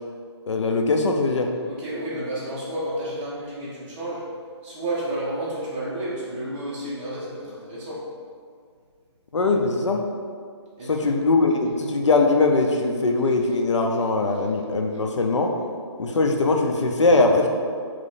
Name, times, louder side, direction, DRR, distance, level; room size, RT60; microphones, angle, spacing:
voice 1, 0.5-1.5 9.3-10.0 10.9-15.5 16.0-17.5, left 3 dB, 85° left, 3 dB, 0.6 m, -21 dB
voice 2, 1.6-4.3 4.6-8.0 10.8-11.1, right 1 dB, 20° right, -7 dB, 1.1 m, -31 dB
4.1 x 3.2 x 3.8 m, 2.1 s
hypercardioid pair, 160°, 15 cm